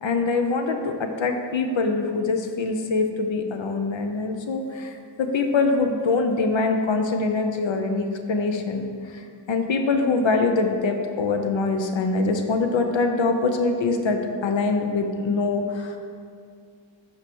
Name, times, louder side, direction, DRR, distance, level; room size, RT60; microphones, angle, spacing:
voice 1, 0.0-16.0, left 3 dB, 70° left, 4 dB, 0.8 m, -24 dB
5.7 x 4.6 x 6.2 m, 2.3 s
cardioid pair, 55°, 47 cm